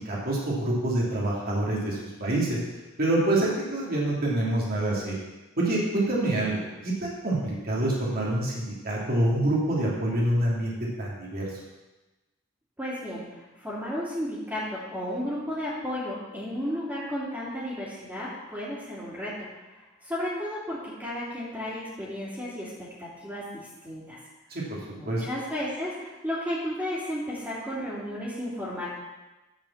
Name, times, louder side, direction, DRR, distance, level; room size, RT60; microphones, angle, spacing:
voice 1, 0.0-2.6 3.0-5.2 5.6-11.4 24.5-24.8 25.0-25.2, right 1 dB, 50° right, -4 dB, 2.8 m, -26 dB
voice 2, 12.8-24.2 24.9-28.9, equal, 10° right, -12 dB, 3.0 m, -33 dB
10.5 x 5.2 x 7.3 m, 1.1 s
head